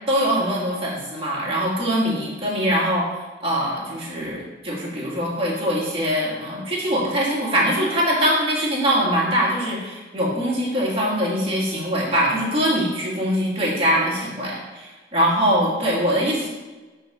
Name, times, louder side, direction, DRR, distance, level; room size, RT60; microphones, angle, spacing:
voice 1, 0.1-16.5, equal, 30° right, -5 dB, 2.4 m, -22 dB
8.0 x 4.4 x 5.7 m, 1.2 s
head